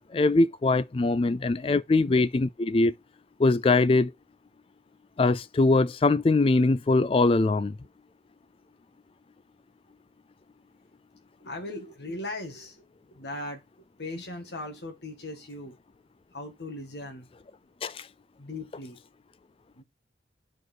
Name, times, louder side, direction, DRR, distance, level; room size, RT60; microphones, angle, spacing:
voice 1, 0.0-2.9 3.4-4.1 5.2-7.8 17.8-18.0, left 3 dB, 30° left, 0.3 m, -22 dB
voice 2, 0.9-1.5 2.0-2.1 11.4-15.8 16.3-17.3 18.4-19.0 19.7-19.8, left 2 dB, 70° left, 2.0 m, -39 dB
7.8 x 4.9 x 4.5 m
head